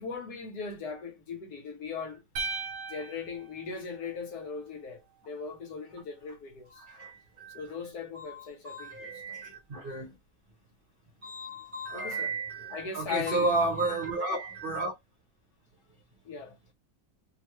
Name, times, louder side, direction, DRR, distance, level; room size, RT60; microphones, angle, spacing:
voice 1, 0.0-2.2 2.9-6.8 7.5-9.2 11.9-12.4 12.7-13.5 16.2-16.6, left 5 dB, 65° left, 1.2 m, -39 dB
sound 1, 2.4-4.6, right 5 dB, 70° right, 1.0 m, -38 dB
voice 2, 6.8-7.6 8.1-10.2 11.2-15.0, right 2 dB, 40° right, 0.9 m, -33 dB
3.2 x 2.1 x 2.9 m
omnidirectional pair, 2.0 m